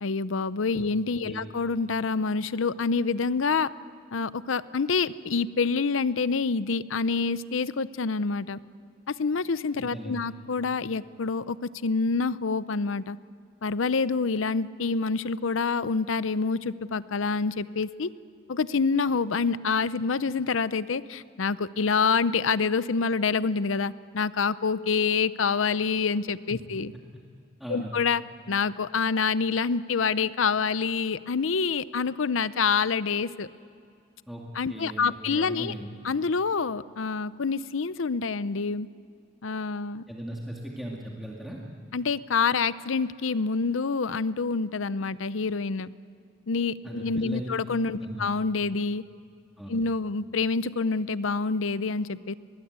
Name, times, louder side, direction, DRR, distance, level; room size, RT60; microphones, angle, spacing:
voice 1, 0.0-3.7 4.1-8.6 9.1-11.6 11.8-13.2 13.6-18.1 18.5-26.9 27.7-28.2 28.5-33.5 34.5-35.7 36.0-38.9 39.4-40.0 41.9-45.9 46.5-49.0 49.7-52.3, left 4 dB, 85° left, 16 dB, 0.7 m, -27 dB
voice 2, 9.8-10.3 27.6-27.9 34.3-34.4 34.7-35.9 40.1-41.6 46.8-47.5 47.9-48.2 49.6-49.8, right 1 dB, ahead, -3 dB, 2.2 m, -38 dB
24.0 x 20.0 x 8.1 m, 2.4 s
head